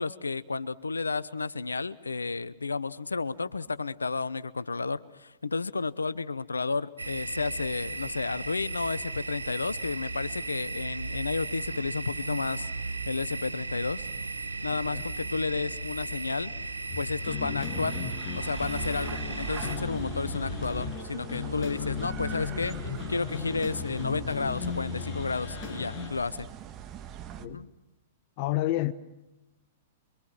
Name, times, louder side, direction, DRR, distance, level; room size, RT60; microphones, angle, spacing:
voice 1, 0.0-12.7 13.1-14.1 14.6-16.5 17.0-18.0 18.3-26.5 27.4-27.7, left 4 dB, 85° left, 0.8 m, -32 dB
sound 1, 7.0-19.8, right 3 dB, 90° right, 1.1 m, -36 dB
sound 2, 16.9-26.1, left 5 dB, 30° left, 7.5 m, -36 dB
sound 3, 18.4-27.5, right 10 dB, 30° right, 1.5 m, -44 dB
voice 2, 28.4-28.9, left 16 dB, 45° left, 1.1 m, -28 dB
28.0 x 24.5 x 6.1 m
figure-of-eight pair, 110°, 0 cm